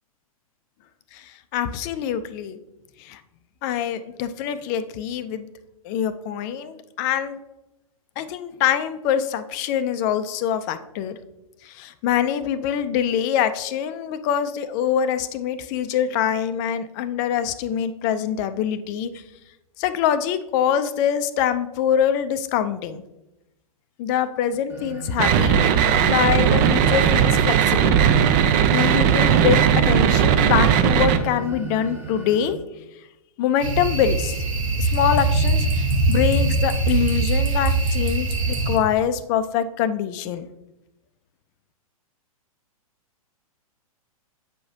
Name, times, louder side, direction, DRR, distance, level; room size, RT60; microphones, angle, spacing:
voice 1, 1.1-2.6 3.0-3.2 3.6-5.5 5.8-7.4 8.2-11.2 11.6-19.1 19.8-23.0 24.0-25.7 26.1-27.9 28.7-32.6 33.4-34.4 34.8-35.7 36.1-40.5, left 9 dB, 30° left, 11 dB, 0.4 m, -24 dB
sound 1, 24.5-32.5, right 12 dB, 10° right, 1.0 m, -29 dB
sound 2, 25.2-31.2, right 8 dB, 30° right, 0.4 m, -18 dB
sound 3, 33.6-38.8, right 3 dB, 65° right, 1.2 m, -22 dB
7.6 x 4.7 x 2.7 m, 0.95 s
figure-of-eight pair, 110°, 19 cm